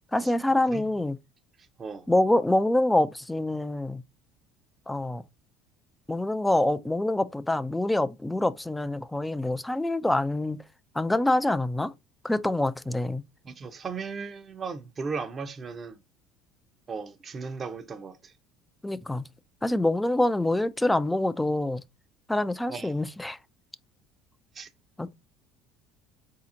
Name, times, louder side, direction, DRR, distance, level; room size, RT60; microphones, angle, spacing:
voice 1, 0.1-1.2 2.1-4.0 4.9-5.2 6.1-10.6 10.9-11.9 12.2-13.2 18.8-19.2 19.6-21.8 22.3-23.4 25.0-25.1, left 1 dB, 10° left, 0.4 m, -25 dB
voice 2, 13.4-16.0 16.9-18.3 22.7-23.0 24.5-24.7, right 5 dB, 35° right, 0.7 m, -36 dB
4.1 x 2.8 x 3.8 m
supercardioid pair, 85°, 0 cm